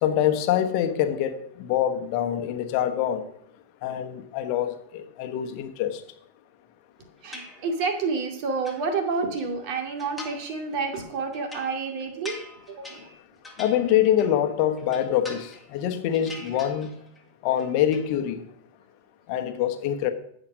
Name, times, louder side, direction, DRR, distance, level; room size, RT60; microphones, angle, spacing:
voice 1, 0.0-3.2 3.8-6.0 13.6-16.9 17.4-18.5 19.3-20.1, left 10 dB, 45° left, 1.1 m, -25 dB
voice 2, 7.2-12.4 12.7-13.0, right 4 dB, 45° right, 2.2 m, -29 dB
sound 1, 7.3-8.0 8.4-9.5 10.0-10.6 10.9-14.5 14.8-15.8 16.1-17.2 17.5-18.1, left 2 dB, 5° left, 2.3 m, -43 dB
14.5 x 5.1 x 6.1 m
figure-of-eight pair, 90°, 0 cm